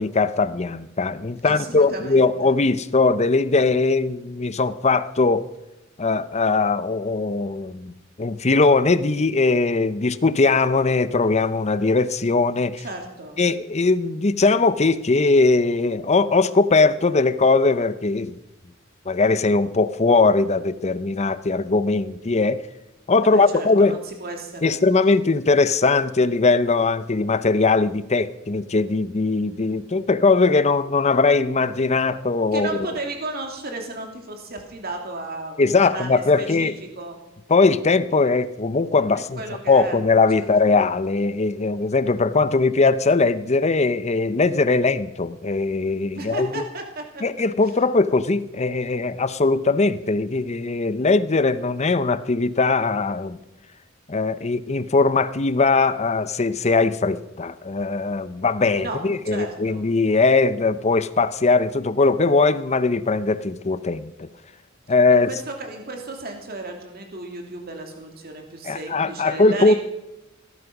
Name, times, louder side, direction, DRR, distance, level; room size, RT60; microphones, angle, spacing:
voice 1, 0.0-5.4 6.0-7.9 8.2-12.8 13.4-18.4 19.1-22.6 23.1-24.0 24.6-32.7 35.6-36.7 37.5-39.4 39.7-46.6 47.2-53.4 54.1-64.3 64.9-65.3 68.7-69.7, left 3 dB, 35° left, 0.7 m, -20 dB
voice 2, 1.4-2.6 12.8-13.4 23.2-24.8 32.5-37.2 39.1-40.0 40.4-40.8 46.1-47.2 47.8-47.9 58.7-59.0 59.2-59.8 65.1-69.8, right 2 dB, 50° right, 2.9 m, -34 dB
18.5 x 11.5 x 6.0 m
head